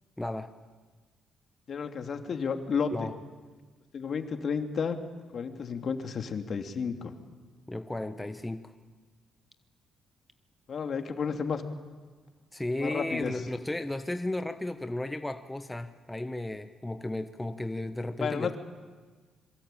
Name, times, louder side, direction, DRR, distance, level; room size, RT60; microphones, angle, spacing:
voice 1, 0.2-0.5 2.9-3.1 7.7-8.7 12.5-18.6, left 1 dB, 10° left, 8 dB, 1.1 m, -34 dB
voice 2, 1.7-2.9 3.9-5.0 5.3-7.1 10.7-11.6 12.8-13.3 18.2-18.6, left 6 dB, 55° left, 6 dB, 2.6 m, -32 dB
26.5 x 23.0 x 9.1 m, 1.4 s
cardioid pair, 90°, 0 cm